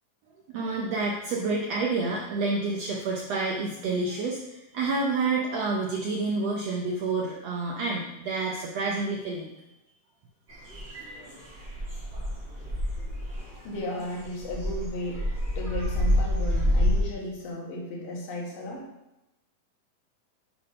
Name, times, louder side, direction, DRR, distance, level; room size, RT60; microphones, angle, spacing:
voice 1, 0.5-9.5, right 3 dB, 75° right, -2 dB, 1.5 m, -29 dB
sound 1, 10.5-17.0, equal, 25° right, 1.5 m, -28 dB
voice 2, 13.6-15.2 15.6-18.9, left 1 dB, 80° left, -2 dB, 3.1 m, -34 dB
8.1 x 3.5 x 5.5 m, 0.91 s
omnidirectional pair, 3.8 m